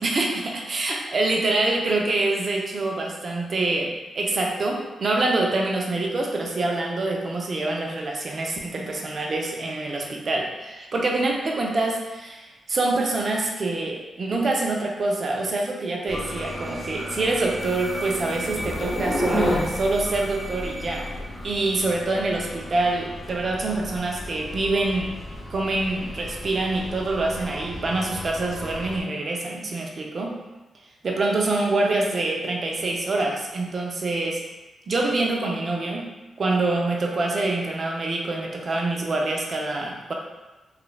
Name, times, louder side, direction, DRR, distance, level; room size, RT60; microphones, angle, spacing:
voice 1, 0.0-21.1 21.4-25.2 25.5-30.4 31.0-34.4 34.9-36.1 36.4-40.1, right 2 dB, 55° right, 0 dB, 0.5 m, -25 dB
sound 1, 16.1-29.0, left 1 dB, 15° left, 0.8 m, -33 dB
3.1 x 2.4 x 2.2 m, 1.1 s
supercardioid pair, 55°, 0 cm